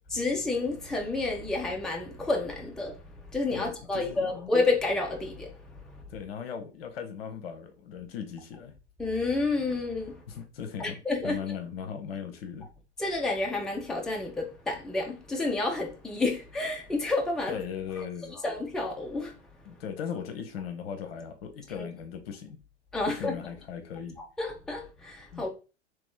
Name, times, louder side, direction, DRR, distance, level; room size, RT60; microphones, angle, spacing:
voice 1, 0.1-3.0 3.3-5.5 9.0-10.2 10.8-11.4 13.0-17.5 18.4-19.3 22.9-23.4 24.4-25.5, left 2 dB, ahead, 0.5 m, -29 dB
voice 2, 3.5-4.5 6.1-8.7 10.3-12.7 17.5-18.3 19.7-22.6 23.1-24.2 25.3-25.5, left 7 dB, 55° left, 0.8 m, -38 dB
3.0 x 2.9 x 3.7 m
figure-of-eight pair, 95°, 35 cm